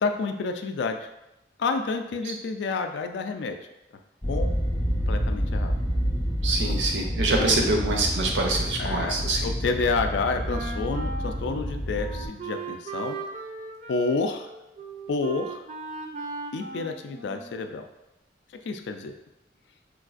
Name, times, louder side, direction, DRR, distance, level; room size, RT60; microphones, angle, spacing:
voice 1, 0.0-1.1 1.6-3.6 4.2-4.6 5.1-5.8 7.4-7.6 8.8-13.2 13.9-14.5 15.1-15.6 16.5-17.9 18.7-19.1, left 4 dB, 75° left, 6 dB, 0.3 m, -29 dB
sound 1, 4.2-12.3, equal, 15° left, 0.6 m, -28 dB
voice 2, 6.4-9.5, right 2 dB, 85° right, 1 dB, 0.6 m, -25 dB
Wind instrument woodwind instrument, 10.5-17.7, right 4 dB, 40° right, 0.3 m, -38 dB
4.4 x 2.4 x 2.4 m, 0.91 s
head